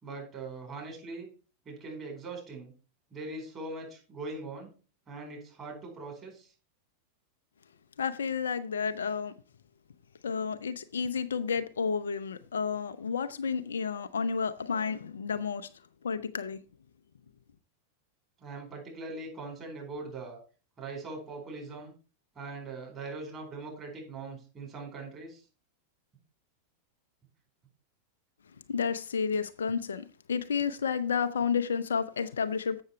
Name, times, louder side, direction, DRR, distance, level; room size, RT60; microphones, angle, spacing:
voice 1, 0.0-1.3 1.7-2.7 3.1-4.7 5.1-6.5 18.4-20.4 20.8-21.9 22.4-25.4, right 3 dB, 25° right, 4.2 m, -41 dB
voice 2, 8.0-9.3 10.2-15.7 16.0-16.6 28.7-32.8, left 6 dB, 65° left, 0.6 m, -31 dB
7.8 x 6.5 x 4.5 m
figure-of-eight pair, 90°, 0 cm